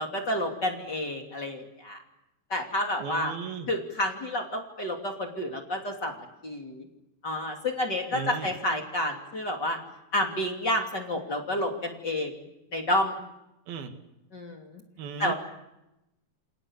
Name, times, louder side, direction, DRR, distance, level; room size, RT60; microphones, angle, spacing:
voice 1, 0.0-2.0 2.5-3.3 3.7-6.8 7.2-9.8 10.1-12.3 12.7-13.1 14.3-14.7 15.2-15.3, left 1 dB, 30° left, 2 dB, 3.3 m, -30 dB
voice 2, 3.0-3.7 8.1-8.5 13.7-13.9 15.0-15.3, right 6 dB, 85° right, 6 dB, 3.8 m, -36 dB
29.5 x 27.0 x 7.3 m, 0.92 s
omnidirectional pair, 4.2 m